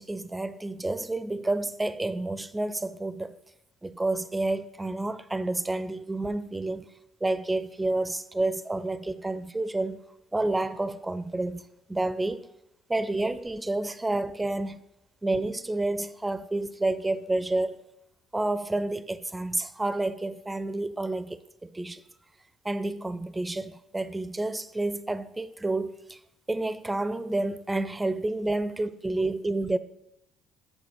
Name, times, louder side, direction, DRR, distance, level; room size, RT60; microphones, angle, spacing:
voice 1, 0.0-3.3 3.8-6.9 7.2-10.0 10.3-11.6 11.9-12.5 12.9-14.8 15.2-17.8 18.3-22.0 22.6-26.2 26.5-29.8, right 2 dB, 15° right, 0.5 m, -29 dB
8.2 x 4.0 x 6.2 m
figure-of-eight pair, 50°, 0 cm